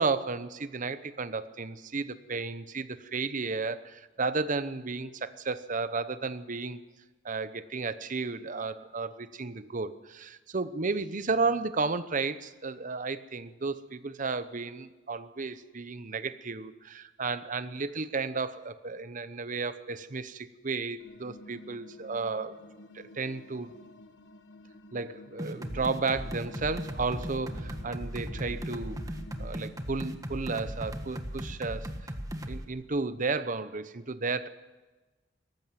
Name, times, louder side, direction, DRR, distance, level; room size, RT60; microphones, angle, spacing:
voice 1, 0.0-6.8 7.2-22.6 22.9-23.7 24.9-29.0 29.4-31.9 32.5-34.5, right 4 dB, 45° right, 13 dB, 0.9 m, -33 dB
sound 1, 21.0-29.5, left 1 dB, 75° left, 1.2 m, -51 dB
sound 2, 25.4-32.6, equal, 20° right, 1.5 m, -37 dB
19.0 x 14.5 x 9.3 m, 1.2 s
head